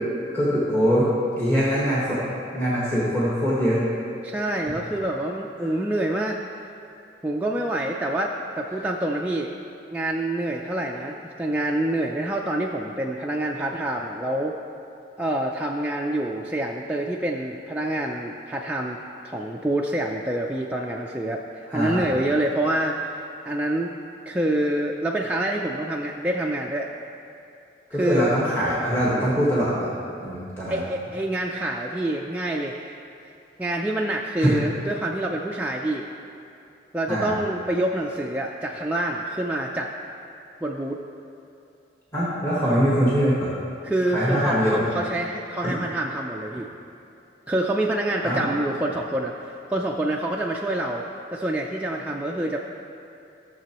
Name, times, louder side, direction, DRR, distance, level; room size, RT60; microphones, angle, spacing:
voice 1, 0.3-1.1 1.4-2.2 2.5-3.8 5.6-5.7 8.7-8.8 21.7-22.1 27.9-29.9 30.2-30.8 34.4-34.5 37.1-37.3 42.1-43.5 44.1-44.8 45.6-45.7 48.2-48.5, equal, 10° left, -9 dB, 1.3 m, -23 dB
voice 2, 4.2-6.4 7.2-9.5 9.9-14.5 15.2-19.0 19.2-23.1 23.4-23.9 24.3-26.9 27.9-28.3 30.7-33.0 33.6-36.0 36.9-39.9 40.6-41.0 43.8-46.7 47.5-51.0 51.3-52.6, right 1 dB, 10° right, -2 dB, 0.3 m, -26 dB
14.0 x 6.8 x 3.0 m, 2.6 s
head